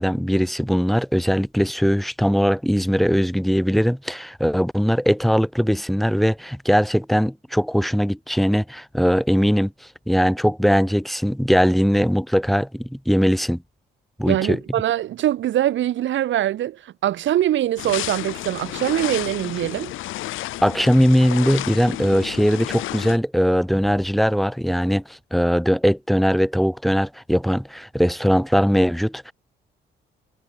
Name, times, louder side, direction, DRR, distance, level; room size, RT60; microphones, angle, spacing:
voice 1, 0.0-9.7 10.1-13.6 14.2-14.6 20.6-29.3, equal, ahead, 3.3 m, -20 dB
voice 2, 14.3-19.9, right 12 dB, 70° right, 1.4 m, -23 dB
sound 1, 17.8-23.2, left 15 dB, 90° left, 4.9 m, -31 dB
cardioid pair, 90°, 20 cm